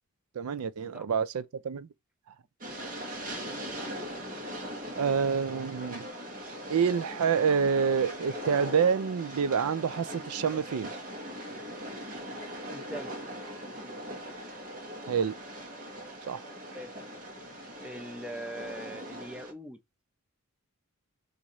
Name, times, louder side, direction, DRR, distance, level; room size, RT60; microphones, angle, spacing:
voice 1, 0.4-1.9 5.0-6.1 6.7-10.9 15.1-15.3 16.3-16.4, right 6 dB, 85° right, 0.4 m, -27 dB
Train, 2.6-19.5, equal, 40° right, 1.2 m, -40 dB
voice 2, 3.6-3.9 12.7-13.1 16.7-17.0 17.8-19.8, right 1 dB, 5° right, 0.5 m, -42 dB
4.6 x 2.6 x 4.1 m
head